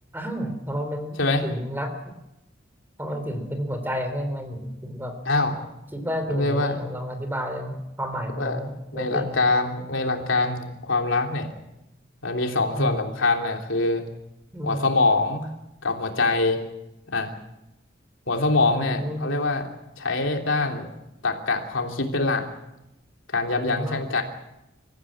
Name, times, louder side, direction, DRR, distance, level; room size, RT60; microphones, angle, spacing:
voice 1, 0.1-1.9 3.0-5.2 5.9-9.4 12.7-13.0 14.5-14.9 18.6-19.4 23.6-24.0, equal, 10° right, 7 dB, 3.3 m, -31 dB
voice 2, 5.3-5.6 6.3-6.8 8.4-8.6 8.9-11.5 12.2-14.0 14.6-15.5 15.8-16.6 17.1-17.3 18.3-19.7 20.0-20.9 21.2-22.4 23.3-24.2, left 3 dB, 80° left, 2 dB, 3.2 m, -24 dB
26.5 x 15.0 x 8.7 m, 0.92 s
head